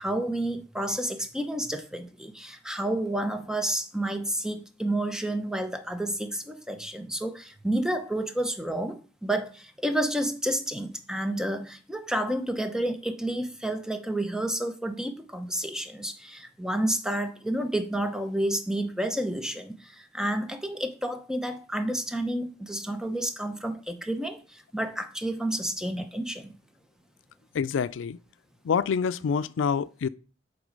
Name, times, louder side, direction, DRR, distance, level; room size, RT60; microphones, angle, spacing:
voice 1, 0.0-26.6, right 1 dB, 5° right, 0.8 m, -30 dB
voice 2, 27.5-28.2 28.6-30.1, left 6 dB, 85° left, 0.4 m, -26 dB
8.1 x 3.7 x 5.3 m
head